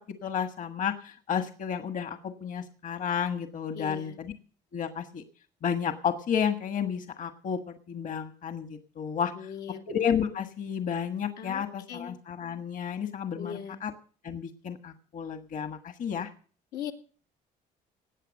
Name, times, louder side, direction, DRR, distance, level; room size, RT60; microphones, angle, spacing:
voice 1, 0.1-4.3 4.7-5.2 5.6-9.5 9.9-13.9 14.2-16.3, left 7 dB, 50° left, 9 dB, 1.5 m, -32 dB
voice 2, 3.7-4.2 9.3-9.8 11.4-12.1 13.4-13.8 16.7-16.9, left 8 dB, 90° left, 3 dB, 2.2 m, -39 dB
18.5 x 8.5 x 6.5 m, 0.42 s
cardioid pair, 110°, 17 cm